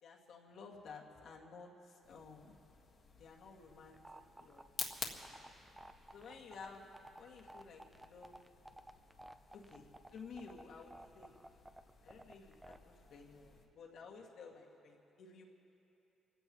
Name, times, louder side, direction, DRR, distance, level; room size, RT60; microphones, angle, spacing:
voice 1, 0.0-2.5 3.2-4.7 5.2-5.5 6.1-6.9 7.2-8.4 9.5-9.9 10.1-11.3 12.0-15.4, left 4 dB, 70° left, -1 dB, 2.2 m, -54 dB
sound 1, 2.0-13.7, left 5 dB, 55° left, 1.7 m, -52 dB
sound 2, 3.9-12.8, right 1 dB, 10° right, 0.7 m, -54 dB
28.0 x 16.0 x 3.1 m, 2.9 s
cardioid pair, 90°, 0 cm